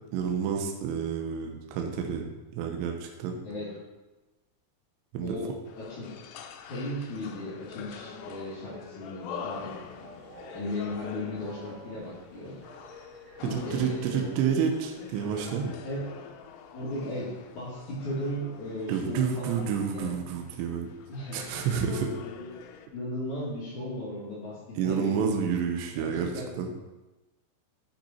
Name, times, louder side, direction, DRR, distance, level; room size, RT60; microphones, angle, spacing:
voice 1, 0.1-3.4 5.1-5.4 13.4-15.8 18.9-20.9 21.3-22.1 24.8-26.7, right 7 dB, 80° right, 3 dB, 3.0 m, -29 dB
voice 2, 5.2-6.1 6.7-9.8 10.3-12.6 13.4-14.3 15.8-16.0 16.7-19.6 19.9-20.1 21.1-21.4 22.1-22.5 22.9-25.4 26.0-26.5, left 1 dB, 50° left, -7 dB, 3.0 m, -36 dB
sound 1, 5.7-22.9, left 7 dB, 80° left, 2.7 m, -45 dB
Train, 9.7-15.5, equal, 40° right, 3.5 m, -50 dB
11.5 x 5.9 x 4.3 m, 1.1 s
omnidirectional pair, 5.2 m